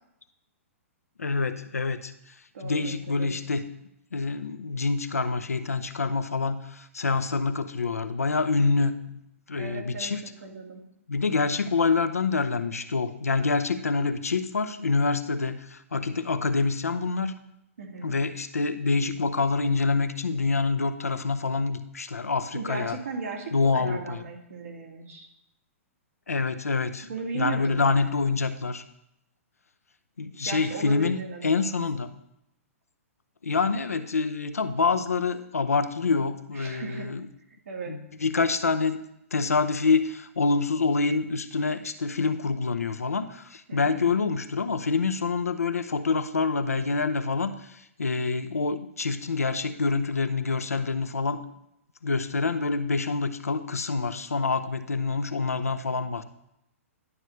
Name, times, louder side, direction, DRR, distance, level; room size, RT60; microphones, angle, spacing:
voice 1, 1.2-3.6 4.1-9.2 9.5-10.2 11.1-17.4 18.0-23.0 23.5-24.2 26.3-27.1 27.3-28.8 30.2-32.1 33.4-37.3 37.9-39.0 39.3-51.4 52.0-56.2, left 4 dB, 90° left, 10 dB, 0.6 m, -26 dB
voice 2, 2.5-3.4 9.5-10.1 10.4-10.8 17.8-18.2 22.5-25.3 27.1-28.0 30.4-31.7 36.5-37.1 37.7-38.0 43.7-44.0, right 4 dB, 75° right, -1 dB, 2.1 m, -36 dB
11.0 x 6.4 x 3.2 m, 0.81 s
hypercardioid pair, 120°, 8 cm